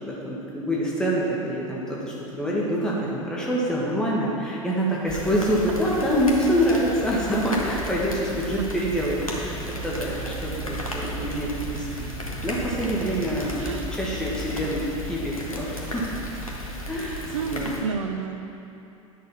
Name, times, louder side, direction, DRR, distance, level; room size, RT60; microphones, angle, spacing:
voice 1, 0.0-12.1 12.4-13.6 13.9-16.1 16.9-17.2 17.5-17.7, equal, 5° left, -5 dB, 1.6 m, -26 dB
sound 1, 5.1-17.8, equal, 85° left, 1.4 m, -34 dB
voice 2, 13.6-14.0 17.3-18.4, right 5 dB, 65° right, 6 dB, 0.8 m, -30 dB
10.0 x 6.6 x 5.8 m, 2.9 s
figure-of-eight pair, 80°, 18 cm